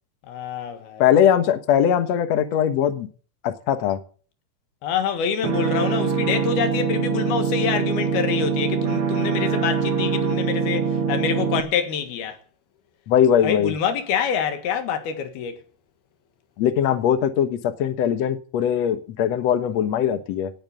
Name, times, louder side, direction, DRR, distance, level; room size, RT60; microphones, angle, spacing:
voice 1, 0.3-1.1 4.8-12.4 13.4-15.6, left 7 dB, 75° left, 3.6 m, -26 dB
voice 2, 1.0-3.1 3.4-4.0 13.1-13.7 16.6-20.5, left 9 dB, 60° left, 1.9 m, -20 dB
sound 1, 5.4-11.6, right 6 dB, 50° right, 1.8 m, -23 dB
17.5 x 9.2 x 6.8 m
omnidirectional pair, 4.5 m